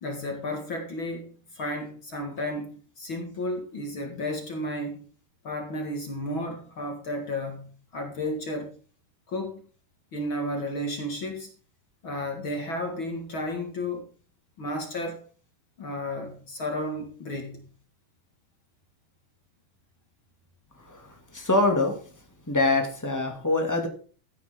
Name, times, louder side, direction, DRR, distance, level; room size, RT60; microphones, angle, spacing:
voice 1, 0.0-5.0 5.4-8.7 9.3-9.6 10.1-11.5 12.0-14.1 14.6-15.2 15.8-17.7, left 1 dB, 45° left, 3 dB, 1.9 m, -33 dB
voice 2, 21.3-22.0 22.5-23.9, left 2 dB, 5° left, 2 dB, 1.6 m, -24 dB
15.0 x 9.6 x 3.8 m, 0.40 s
omnidirectional pair, 4.7 m